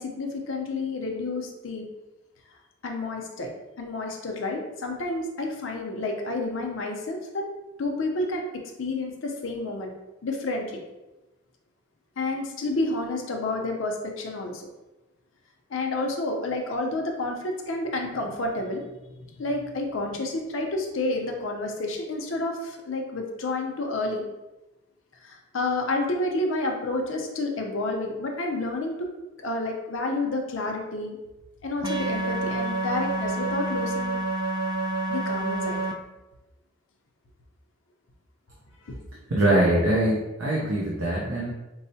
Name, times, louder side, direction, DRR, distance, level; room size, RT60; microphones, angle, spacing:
voice 1, 0.0-1.8 2.8-3.5 3.8-7.5 7.8-8.4 8.8-9.9 10.2-10.8 12.2-14.7 15.7-18.8 19.4-24.3 25.2-29.1 29.4-31.2 31.6-34.2 35.1-35.8 38.8-38.9, left 2 dB, 70° left, 2 dB, 0.6 m, -30 dB
sound 1, 31.8-35.9, right 2 dB, 20° right, 0.3 m, -28 dB
voice 2, 39.3-41.5, right 1 dB, 75° right, -4 dB, 0.6 m, -23 dB
4.6 x 2.0 x 2.7 m, 1.0 s
head